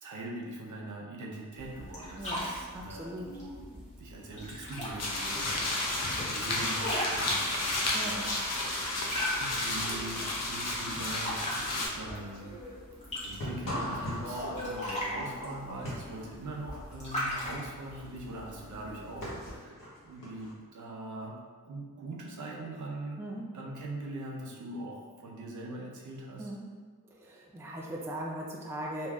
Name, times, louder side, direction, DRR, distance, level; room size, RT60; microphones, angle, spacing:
voice 1, 0.0-3.6 4.0-8.9 9.4-12.5 13.2-21.4 21.7-26.5, right 2 dB, 60° right, -2 dB, 0.6 m, -42 dB
sound 1, 1.6-19.6, equal, 20° left, 1.1 m, -40 dB
voice 2, 2.2-3.3 7.9-8.3 23.2-23.5 26.4-26.6 27.0-29.1, right 1 dB, 10° right, -2 dB, 0.4 m, -39 dB
sound 2, 5.0-11.9, left 2 dB, 50° left, 0.7 m, -32 dB
sound 3, 5.5-20.5, left 1 dB, 65° left, 1.0 m, -42 dB
3.3 x 2.6 x 2.3 m, 1.5 s
cardioid pair, 70°, 33 cm